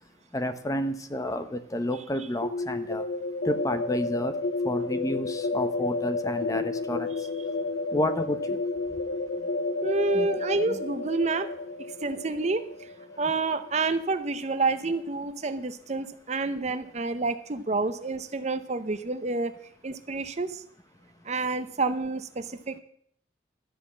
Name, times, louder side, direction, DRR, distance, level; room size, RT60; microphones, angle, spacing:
voice 1, 0.3-3.0 3.4-4.3 4.6-7.1 7.9-8.6 10.1-10.3 10.7-10.8, left 1 dB, 20° left, 9 dB, 0.8 m, -30 dB
sound 1, 2.4-14.1, left 3 dB, 85° left, 0.8 m, -31 dB
voice 2, 9.8-11.5 11.8-12.9 13.2-19.5 19.8-20.6 21.2-22.8, right 3 dB, 40° right, 11 dB, 0.7 m, -29 dB
12.5 x 5.8 x 8.5 m, 0.64 s
head